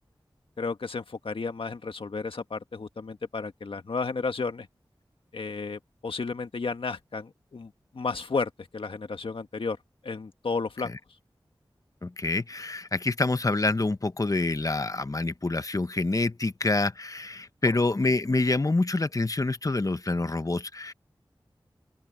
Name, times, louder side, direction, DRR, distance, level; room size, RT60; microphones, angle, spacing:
voice 1, 0.6-4.7 5.3-9.8 10.0-10.9, left 4 dB, 80° left, 1.7 m, -33 dB
voice 2, 12.0-20.9, left 2 dB, 40° left, 1.0 m, -27 dB
open air
cardioid pair, 40°, 9 cm